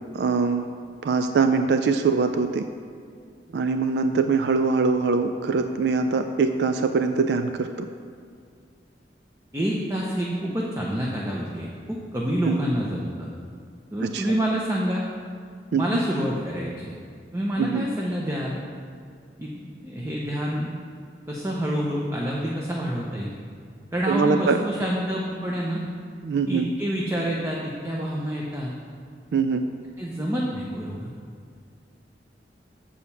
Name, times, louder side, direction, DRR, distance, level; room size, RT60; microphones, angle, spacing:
voice 1, 0.1-0.7 1.0-2.6 3.5-7.7 12.4-12.6 14.1-14.2 15.7-15.8 17.6-17.9 24.1-24.6 26.2-26.7 29.3-29.6, right 4 dB, 70° right, 7 dB, 0.4 m, -22 dB
voice 2, 9.5-13.3 13.9-15.0 15.7-17.0 17.3-18.6 19.4-20.7 21.3-23.3 23.9-25.8 26.5-28.7 30.0-31.1, equal, 15° right, -3 dB, 0.7 m, -27 dB
6.9 x 5.0 x 7.0 m, 2.2 s
head